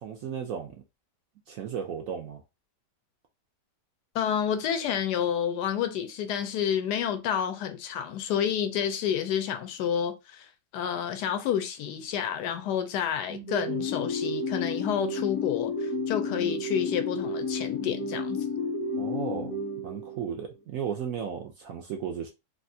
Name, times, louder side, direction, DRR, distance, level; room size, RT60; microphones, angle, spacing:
voice 1, 0.0-0.7 1.5-2.4 19.0-19.5 19.8-22.3, right 8 dB, 70° right, 0.8 m, -34 dB
voice 2, 4.1-10.5 10.7-18.4, left 8 dB, 80° left, 1.1 m, -29 dB
sound 1, 13.3-20.5, left 3 dB, 60° left, 1.0 m, -31 dB
3.4 x 2.5 x 2.6 m
omnidirectional pair, 1.8 m